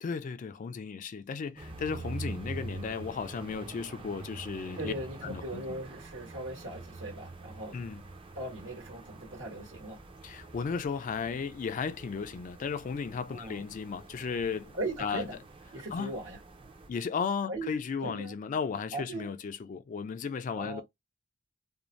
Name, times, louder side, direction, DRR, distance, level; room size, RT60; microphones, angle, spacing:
voice 1, 0.0-4.9 5.2-5.6 7.7-8.0 10.2-15.3 15.9-16.1 16.9-20.8, left 5 dB, 40° left, 0.3 m, -35 dB
sound 1, 1.6-16.9, right 2 dB, 25° right, 0.5 m, -45 dB
voice 2, 4.8-7.7 8.3-10.0 13.3-13.6 14.7-15.4 15.7-16.4 17.5-18.4 18.9-19.3 20.6-20.8, right 2 dB, 75° right, 1.2 m, -39 dB
2.5 x 2.0 x 3.0 m
head